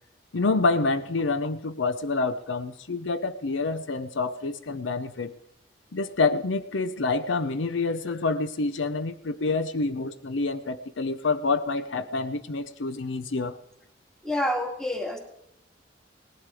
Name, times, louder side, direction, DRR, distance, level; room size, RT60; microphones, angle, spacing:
voice 1, 0.3-5.3 5.9-13.6, left 3 dB, 80° left, 12 dB, 0.6 m, -27 dB
voice 2, 14.2-15.2, left 1 dB, 5° left, 3 dB, 1.7 m, -28 dB
18.0 x 11.0 x 4.9 m, 0.79 s
head